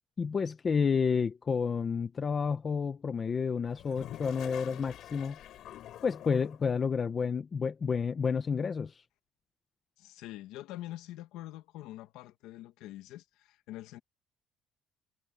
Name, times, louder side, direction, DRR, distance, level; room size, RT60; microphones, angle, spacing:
voice 1, 0.2-5.4 6.0-9.0, left 6 dB, 25° left, 0.8 m, -30 dB
Toilet flush, 3.7-6.7, left 12 dB, 50° left, 6.3 m, -46 dB
voice 2, 10.0-14.0, left 15 dB, 80° left, 1.5 m, -45 dB
cardioid pair, 175°, 0 cm